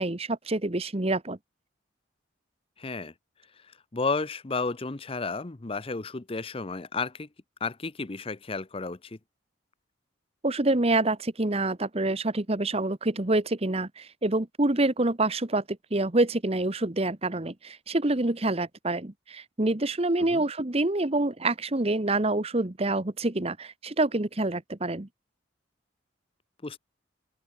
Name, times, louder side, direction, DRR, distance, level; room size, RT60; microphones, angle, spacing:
voice 1, 0.0-1.4 10.4-15.6 15.9-25.1, right 2 dB, 30° right, 1.1 m, -27 dB
voice 2, 2.8-3.1 3.6-7.3 7.6-9.2 20.3-20.4 26.6-26.8, left 4 dB, 30° left, 0.7 m, -32 dB
open air
head